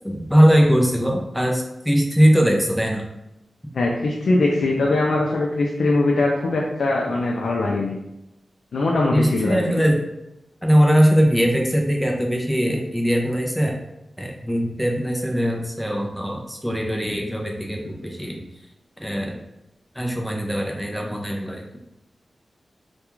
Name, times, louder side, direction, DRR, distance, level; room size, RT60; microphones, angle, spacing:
voice 1, 0.0-3.0 9.1-10.0 10.6-13.8 14.2-18.4 19.0-19.3 20.0-21.6, equal, ahead, 0 dB, 0.4 m, -20 dB
voice 2, 3.7-8.0 8.7-9.6, left 2 dB, 75° left, -2 dB, 0.3 m, -21 dB
2.3 x 2.2 x 3.0 m, 0.91 s
wide cardioid pair, 130°, 0 cm